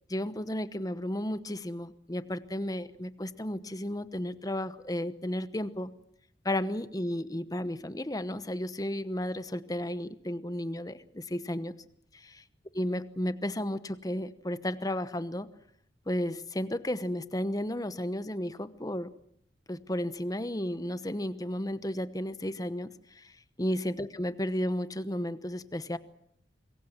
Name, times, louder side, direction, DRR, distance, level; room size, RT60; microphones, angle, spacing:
voice 1, 0.1-5.9 6.4-11.7 12.2-12.3 12.7-15.5 16.1-19.1 19.7-23.3 23.6-26.0, left 1 dB, 20° left, 13 dB, 1.0 m, -33 dB
25.5 x 22.0 x 7.5 m, 0.70 s
head